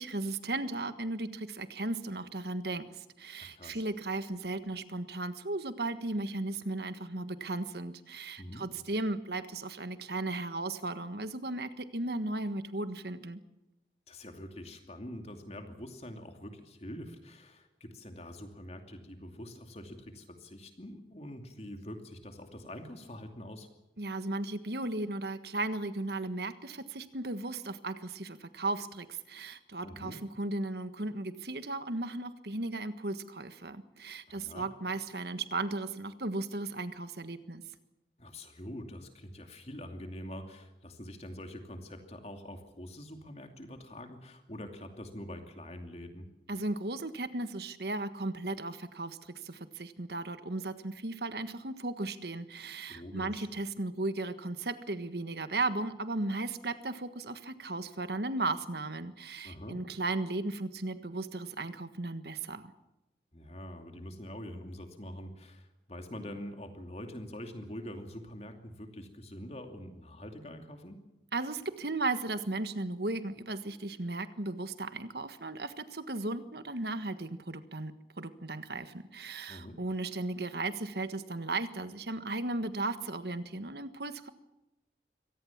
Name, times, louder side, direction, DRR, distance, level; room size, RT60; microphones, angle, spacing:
voice 1, 0.0-13.4 24.0-37.6 46.5-62.7 71.3-84.3, right 2 dB, 65° right, 11 dB, 1.5 m, -36 dB
voice 2, 3.4-3.8 8.4-8.7 14.1-23.7 29.8-30.2 34.3-34.7 38.2-46.3 52.9-53.5 59.4-59.8 63.3-71.0 79.5-79.8, left 1 dB, 35° left, 5 dB, 2.7 m, -45 dB
24.5 x 18.0 x 7.4 m, 0.98 s
head